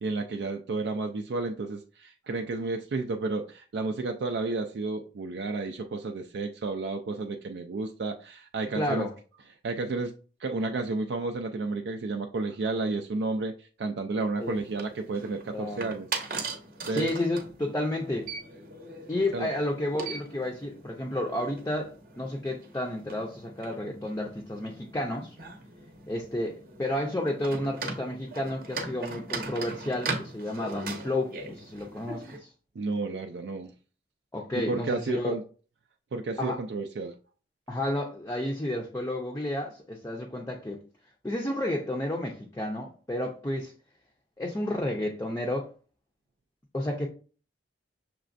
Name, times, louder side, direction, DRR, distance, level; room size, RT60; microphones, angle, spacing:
voice 1, 0.0-9.1 9.6-10.1 10.4-16.1 16.9-17.1 19.3-19.5 32.8-33.7 34.7-35.4 36.1-37.2, right 3 dB, 75° right, 0.4 m, -31 dB
voice 2, 8.7-9.1 14.4-14.6 15.5-15.9 16.9-18.3 19.1-25.4 26.1-32.5 34.3-35.3 36.4-36.6 37.7-40.8 41.2-43.7 44.4-45.7 46.7-47.1, left 1 dB, 15° left, 0.4 m, -31 dB
sound 1, 14.4-32.4, right 3 dB, 50° right, 0.7 m, -40 dB
5.9 x 3.2 x 2.5 m
head